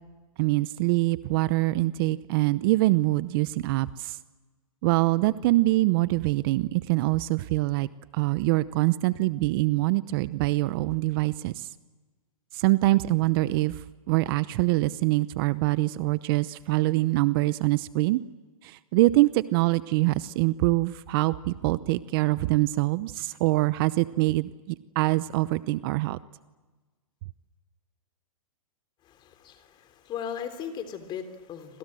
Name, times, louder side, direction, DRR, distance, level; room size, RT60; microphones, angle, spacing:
voice 1, 0.4-4.2 4.8-7.9 8.1-11.7 12.5-18.2 18.6-26.2, right 19 dB, 40° right, 16 dB, 0.8 m, -24 dB
voice 2, 29.0-31.8, left 8 dB, 25° left, 9 dB, 3.3 m, -37 dB
29.0 x 26.0 x 7.7 m, 1.3 s
hypercardioid pair, 140°, 18 cm